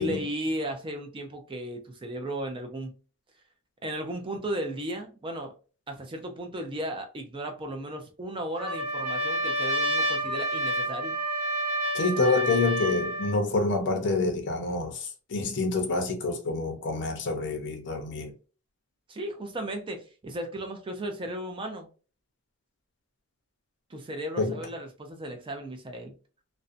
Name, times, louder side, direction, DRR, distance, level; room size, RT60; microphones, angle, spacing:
voice 1, 0.0-2.9 3.8-5.5 5.9-11.2 19.1-21.9 23.9-26.1, right 1 dB, 25° right, 0.4 m, -35 dB
Trumpet, 8.6-13.4, equal, 80° right, 0.7 m, -29 dB
voice 2, 11.9-18.3 24.4-24.5, left 3 dB, 55° left, 0.6 m, -27 dB
2.5 x 2.1 x 2.4 m
head